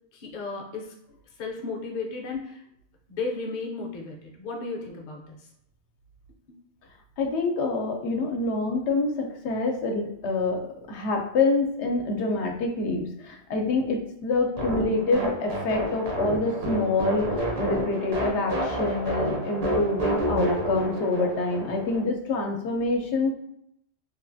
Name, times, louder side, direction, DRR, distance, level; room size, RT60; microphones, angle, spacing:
voice 1, 0.1-0.9 1.4-2.6 3.1-5.5 6.5-6.6, left 3 dB, 55° left, 1 dB, 0.6 m, -34 dB
voice 2, 7.2-10.6 10.9-23.3, left 3 dB, 80° left, 2 dB, 0.9 m, -26 dB
sound 1, 14.6-22.0, right 1 dB, 45° right, 0.6 m, -29 dB
3.0 x 2.3 x 2.5 m, 0.76 s
omnidirectional pair, 1.2 m